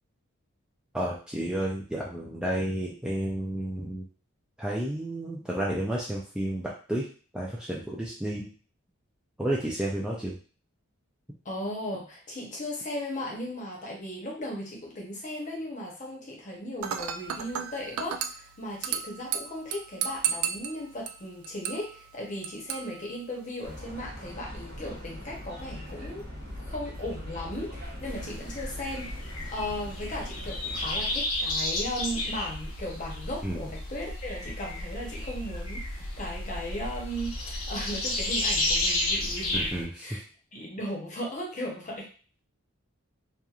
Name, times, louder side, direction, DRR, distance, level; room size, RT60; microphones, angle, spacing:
voice 1, 0.9-4.0 4.6-7.1 7.3-8.5 9.4-10.4 33.4-33.7 39.5-40.2, right 1 dB, 5° right, -4 dB, 0.3 m, -31 dB
voice 2, 11.4-26.2 26.6-29.2 29.5-39.6 40.0-40.2 40.5-42.1, left 1 dB, 35° left, -2 dB, 0.8 m, -36 dB
Dishes pots and pans / Glass, 16.8-23.8, right 8 dB, 90° right, 0.3 m, -35 dB
sound 1, 23.6-31.1, equal, 50° right, 0.8 m, -41 dB
sound 2, 28.0-39.8, left 1 dB, 85° left, 0.9 m, -32 dB
2.9 x 2.4 x 2.4 m, 0.39 s
head